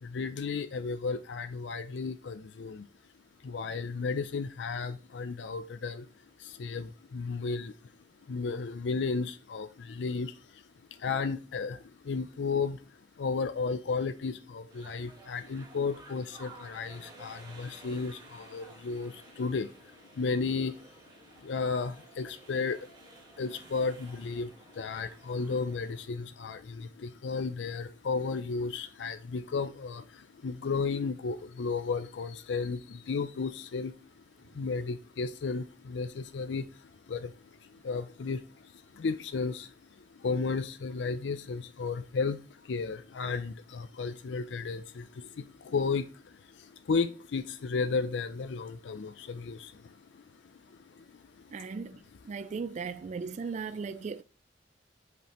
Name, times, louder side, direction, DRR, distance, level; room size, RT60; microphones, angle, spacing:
voice 1, 0.0-2.9 3.4-6.1 6.4-7.9 8.2-10.6 10.9-21.0 21.3-23.1 23.4-52.6 53.2-54.0, left 4 dB, 80° left, 0.4 m, -34 dB
sound 1, 14.7-26.1, right 2 dB, 25° right, 1.5 m, -54 dB
voice 2, 51.5-51.9 52.3-54.2, right 5 dB, 40° right, 0.3 m, -37 dB
8.0 x 4.9 x 3.0 m
head